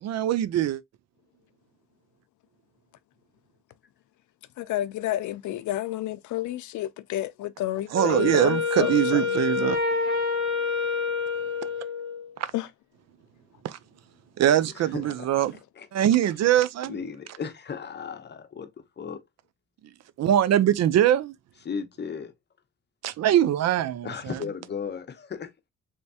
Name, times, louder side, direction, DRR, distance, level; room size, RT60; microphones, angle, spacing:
voice 1, 0.0-0.8 7.9-9.8 13.6-13.8 14.4-15.5 15.9-16.9 20.2-21.3 23.0-24.1, right 11 dB, 60° right, 0.5 m, -22 dB
voice 2, 4.6-9.3 12.5-12.7, left 14 dB, 75° left, 0.5 m, -31 dB
Wind instrument woodwind instrument, 7.9-12.3, left 5 dB, 40° right, 2.0 m, -27 dB
voice 3, 14.5-15.3 15.8-15.9 16.9-19.2 21.6-22.3 24.0-25.7, left 6 dB, 35° left, 0.7 m, -36 dB
3.4 x 3.1 x 2.7 m
cardioid pair, 90°, 30 cm